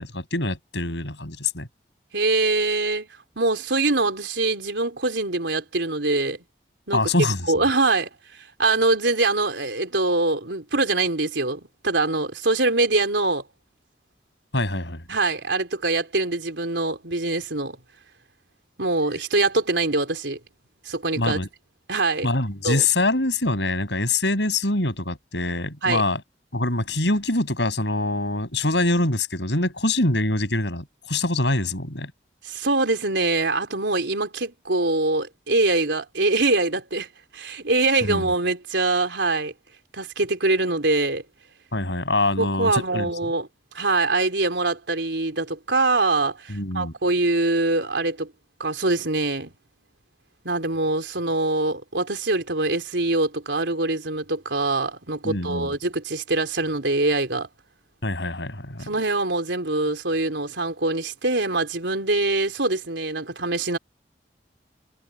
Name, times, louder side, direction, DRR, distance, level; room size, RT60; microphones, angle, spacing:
voice 1, 0.0-1.7 6.9-7.5 14.5-15.0 21.2-21.5 22.2-26.2 26.5-32.1 38.0-38.3 41.7-43.1 46.5-46.9 55.2-55.8 58.0-58.9, left 2 dB, 80° left, 7.8 m, -24 dB
voice 2, 2.1-3.1 3.4-6.4 6.9-8.1 8.6-13.4 15.1-17.8 18.8-20.4 20.9-21.4 21.9-22.3 22.6-22.9 25.8-26.0 32.4-37.1 37.3-39.5 39.9-41.2 42.4-43.5 43.7-48.3 48.6-49.5 50.4-57.5 58.8-63.8, right 2 dB, 90° right, 4.1 m, -23 dB
head